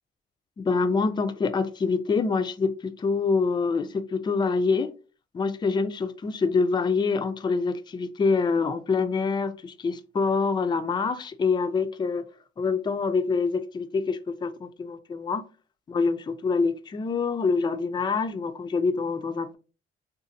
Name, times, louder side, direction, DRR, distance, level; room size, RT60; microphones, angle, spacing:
voice 1, 0.6-4.9 5.3-12.2 12.6-15.4 15.9-19.6, left 4 dB, 25° left, 0.3 m, -26 dB
3.9 x 2.4 x 2.6 m
cardioid pair, 90°, 20 cm